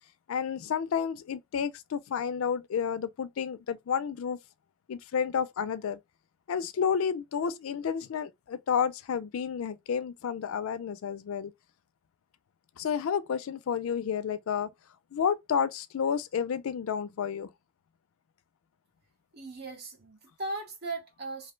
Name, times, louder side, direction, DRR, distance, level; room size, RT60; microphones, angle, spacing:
voice 1, 0.3-4.4 4.9-6.0 6.5-11.5 12.8-14.7 15.1-17.5, left 7 dB, 85° left, 0.4 m, -30 dB
voice 2, 19.3-21.5, right 2 dB, 50° right, 0.9 m, -38 dB
2.7 x 2.1 x 3.1 m
head